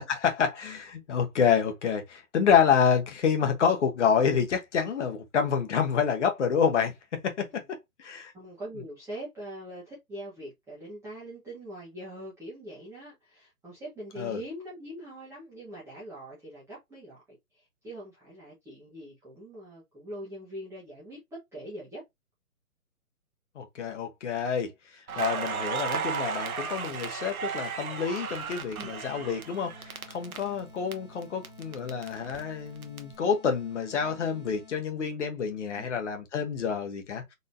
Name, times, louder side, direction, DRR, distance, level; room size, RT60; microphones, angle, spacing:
voice 1, 0.0-8.3 14.2-14.4 23.5-24.7 25.2-29.7 30.1-37.3, left 7 dB, 50° left, 1.4 m, -28 dB
voice 2, 8.3-22.0 28.8-28.9 35.8-35.9, right 1 dB, 5° right, 1.5 m, -42 dB
Crackle, 25.1-30.9 31.2-33.0, right 6 dB, 65° right, 1.1 m, -34 dB
sound 1, 29.1-35.0, left 5 dB, 20° left, 2.2 m, -53 dB
4.1 x 3.9 x 2.6 m
figure-of-eight pair, 135°, 46 cm